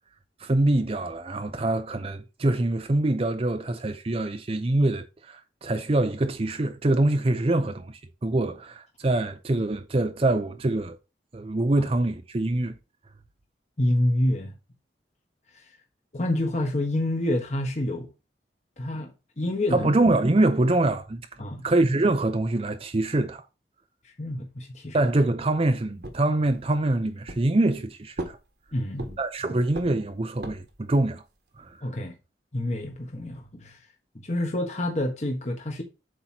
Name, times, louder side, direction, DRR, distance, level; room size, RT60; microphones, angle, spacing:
voice 1, 0.4-11.0 11.3-12.7 19.7-21.2 21.6-23.4 24.9-28.4 29.2-31.2 31.6-31.8, right 2 dB, 35° right, 0.6 m, -24 dB
voice 2, 13.8-14.5 15.5-15.6 16.1-18.1 18.8-19.1 19.4-19.9 21.4-21.6 24.2-25.0 28.7-29.6 31.8-32.1 32.5-33.8 34.2-35.8, left 1 dB, 40° left, 1.4 m, -28 dB
sound 1, 26.0-26.9 27.3-27.8 28.2-29.4 29.7-30.8, right 1 dB, 65° right, 1.5 m, -38 dB
7.9 x 3.1 x 5.8 m
head